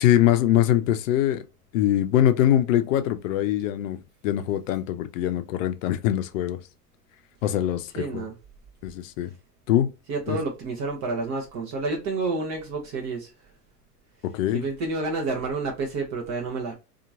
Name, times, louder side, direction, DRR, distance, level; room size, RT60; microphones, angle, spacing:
voice 1, 0.0-1.4 1.7-6.6 7.4-8.2 8.8-9.3 9.7-9.9 10.3-10.4 14.2-14.7, left 12 dB, 55° left, 0.6 m, -23 dB
voice 2, 8.0-8.3 10.1-13.3 14.5-16.7, right 3 dB, 35° right, 0.8 m, -29 dB
2.8 x 2.4 x 2.6 m
hypercardioid pair, 90°, 48 cm